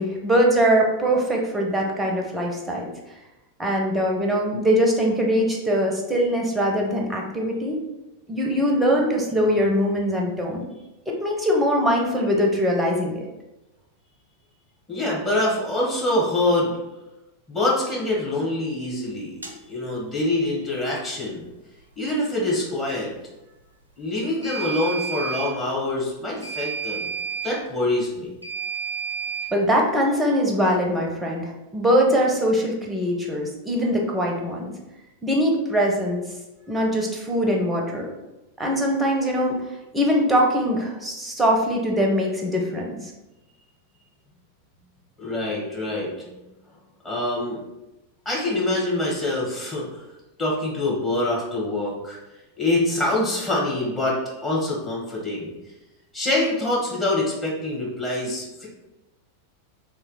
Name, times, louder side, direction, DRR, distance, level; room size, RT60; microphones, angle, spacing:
voice 1, 0.0-2.9 3.6-7.8 8.3-10.7 11.1-13.2 29.5-34.7 35.2-36.2 36.7-38.1 38.6-39.6 39.9-43.1, equal, 10° right, 0 dB, 0.8 m, -22 dB
voice 2, 14.9-16.8 17.5-19.4 19.7-21.5 22.0-23.1 24.0-27.1 27.4-28.3 45.2-46.3 47.0-47.6 48.2-50.1 50.4-52.2 52.6-55.5 56.1-58.7, left 2 dB, 15° left, -5 dB, 1.4 m, -25 dB
sound 1, 19.4-19.6 24.4-25.5 26.4-27.5 28.4-29.5, right 6 dB, 80° right, 0.5 m, -30 dB
3.2 x 2.8 x 3.8 m, 0.99 s
figure-of-eight pair, 90°, 0 cm